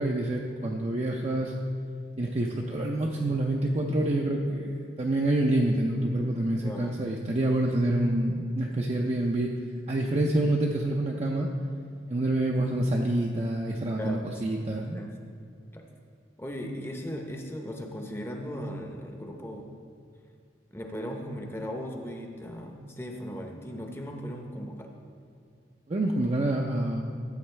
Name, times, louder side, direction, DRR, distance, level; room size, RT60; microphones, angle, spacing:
voice 1, 0.0-1.5 2.2-9.5 9.9-11.5 12.1-15.0 25.9-27.0, right 1 dB, 35° right, -1 dB, 0.5 m, -27 dB
voice 2, 6.6-7.0 13.9-15.2 15.7-15.8 16.4-19.7 20.7-24.9, equal, 15° left, 2 dB, 0.7 m, -38 dB
13.0 x 7.7 x 3.3 m, 2.3 s
head